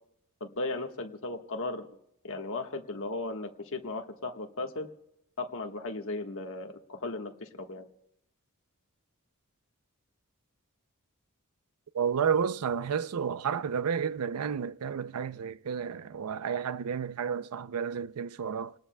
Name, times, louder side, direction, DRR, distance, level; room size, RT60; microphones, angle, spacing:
voice 1, 0.4-1.9 2.2-4.9 5.4-7.9, left 2 dB, 65° left, 1.4 m, -36 dB
voice 2, 11.9-18.7, right 7 dB, 85° right, 0.5 m, -31 dB
28.5 x 19.5 x 2.2 m
head